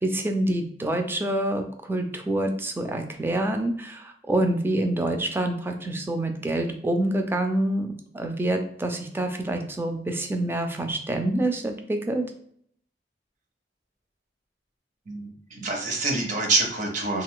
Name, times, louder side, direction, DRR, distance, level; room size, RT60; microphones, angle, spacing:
voice 1, 0.0-12.2, right 1 dB, 15° right, 4 dB, 0.3 m, -27 dB
voice 2, 15.1-17.2, right 3 dB, 45° right, 2 dB, 0.7 m, -26 dB
2.4 x 2.3 x 3.6 m, 0.65 s
head